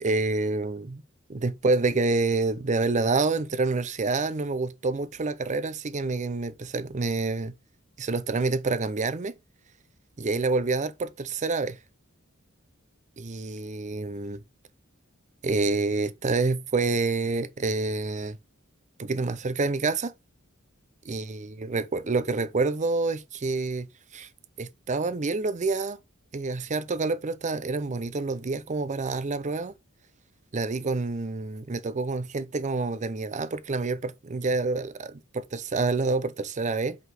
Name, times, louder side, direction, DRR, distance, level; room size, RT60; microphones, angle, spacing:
voice 1, 0.0-1.0 1.3-7.5 8.0-9.3 10.2-11.8 13.2-14.4 15.4-18.4 19.0-20.1 21.1-23.9 24.1-24.3 24.6-26.0 26.3-29.7 30.5-37.0, right 3 dB, 35° right, 0.6 m, -27 dB
5.4 x 3.9 x 4.8 m
head